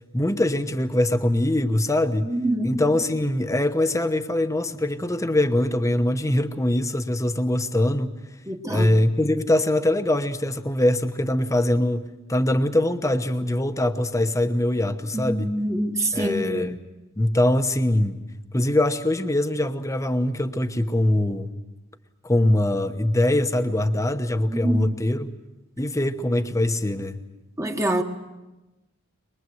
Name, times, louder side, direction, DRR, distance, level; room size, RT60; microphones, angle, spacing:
voice 1, 0.1-2.3 2.6-8.1 8.7-15.5 16.1-16.7 17.2-18.2 18.5-21.5 22.2-25.3 25.8-27.2, left 1 dB, 15° left, 1.0 m, -23 dB
voice 2, 2.2-2.8 8.5-9.0 15.1-16.7 24.5-24.9 27.6-28.0, right 1 dB, 15° right, 1.4 m, -26 dB
23.0 x 22.0 x 7.9 m
head